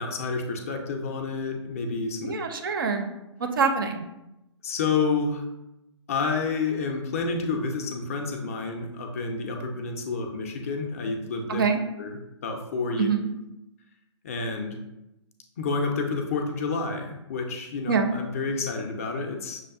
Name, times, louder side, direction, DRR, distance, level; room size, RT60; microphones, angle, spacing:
voice 1, 0.0-2.3 4.6-5.4 6.1-11.6 12.0-13.1 14.2-14.8 15.6-19.6, left 4 dB, 30° left, 4 dB, 0.4 m, -29 dB
voice 2, 2.2-3.1 3.4-4.0 11.5-11.8 13.0-13.3 17.9-18.1, right 5 dB, 45° right, 5 dB, 0.4 m, -24 dB
6.1 x 2.2 x 2.4 m, 0.92 s
figure-of-eight pair, 125°, 15 cm